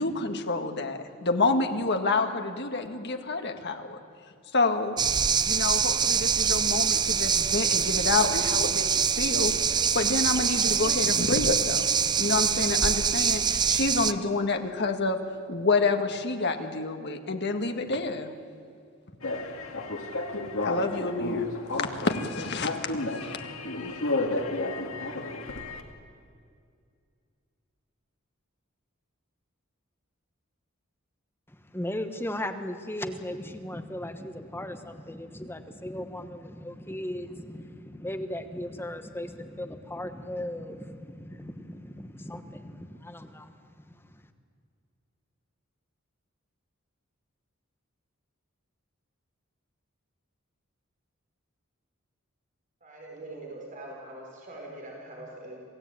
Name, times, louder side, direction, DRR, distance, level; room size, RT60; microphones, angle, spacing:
voice 1, 0.0-4.0 4.5-5.0 5.5-9.5 9.9-11.9 12.2-15.2 15.5-18.3 20.6-23.4 23.8-23.9, left 3 dB, 55° left, 6 dB, 1.8 m, -28 dB
sound 1, 5.0-14.1, right 6 dB, 20° right, 0.5 m, -25 dB
sound 2, 19.2-25.8, left 2 dB, 75° left, 2.3 m, -32 dB
voice 2, 31.5-44.2, left 1 dB, 10° left, 7 dB, 1.2 m, -37 dB
voice 3, 52.8-55.6, right 1 dB, 40° right, -1 dB, 4.5 m, -43 dB
27.5 x 17.0 x 9.1 m, 2.3 s
head